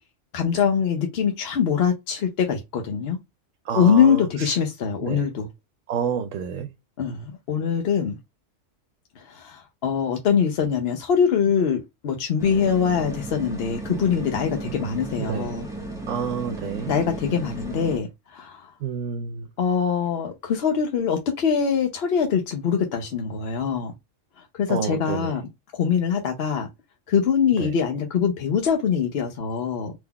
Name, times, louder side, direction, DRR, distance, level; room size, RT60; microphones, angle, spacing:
voice 1, 0.3-3.2 3.8-5.5 7.0-8.2 9.2-15.7 16.9-18.7 19.6-23.9 24.6-25.4 25.7-26.7 27.1-29.9, left 7 dB, 60° left, 0.9 m, -23 dB
voice 2, 3.6-4.6 5.0-5.3 5.9-6.7 15.2-15.5 16.1-16.9 18.8-19.5 24.7-25.3 27.6-27.7, right 6 dB, 90° right, 1.0 m, -29 dB
sound 1, 12.4-18.0, right 2 dB, 5° right, 0.7 m, -35 dB
3.7 x 2.9 x 2.2 m
omnidirectional pair, 1.3 m